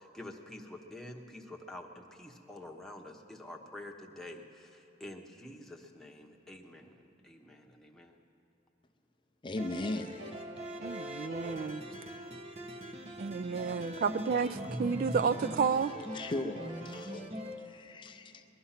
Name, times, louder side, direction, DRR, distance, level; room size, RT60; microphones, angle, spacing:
voice 1, 0.0-8.2, left 1 dB, ahead, 0 dB, 1.0 m, -48 dB
voice 2, 9.4-10.3 16.1-18.4, left 2 dB, 25° left, 7 dB, 0.5 m, -38 dB
sound 1, 9.6-17.6, equal, 35° right, 1.0 m, -41 dB
voice 3, 10.8-11.8 13.2-14.5 14.8-15.9, right 6 dB, 50° right, 14 dB, 0.3 m, -31 dB
20.5 x 11.5 x 5.7 m, 2.9 s
head